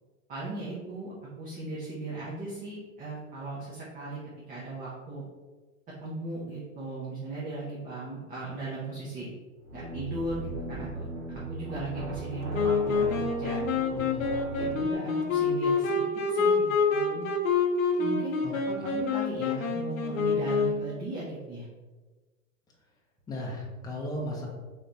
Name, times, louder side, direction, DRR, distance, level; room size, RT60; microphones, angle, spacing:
voice 1, 0.3-4.2 4.5-5.2 6.0-9.3 9.7-13.6 13.9-14.0 14.6-17.3 18.0-21.7, right 2 dB, 20° right, -7 dB, 0.8 m, -37 dB
sound 1, 9.6-14.9, right 2 dB, 55° right, 1.1 m, -38 dB
Wind instrument woodwind instrument, 12.5-20.9, left 4 dB, 80° left, 0.9 m, -27 dB
voice 2, 13.9-14.3 18.4-18.5 18.8-18.9 23.3-24.5, left 1 dB, 10° left, -3 dB, 0.7 m, -36 dB
3.3 x 3.1 x 4.0 m, 1.3 s
hypercardioid pair, 135°, 40 cm